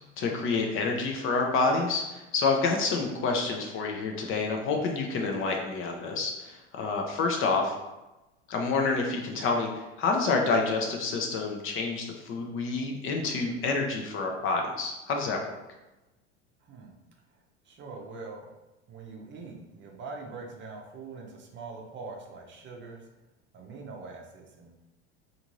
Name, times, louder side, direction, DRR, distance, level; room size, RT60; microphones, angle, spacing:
voice 1, 0.2-7.7 8.5-15.6, left 4 dB, 35° left, 2 dB, 0.5 m, -28 dB
voice 2, 16.6-16.9 17.6-18.5 18.9-23.1 23.5-24.7, right 4 dB, 35° right, 0 dB, 0.6 m, -43 dB
2.5 x 2.5 x 3.0 m, 1.0 s
hypercardioid pair, 95°, 35 cm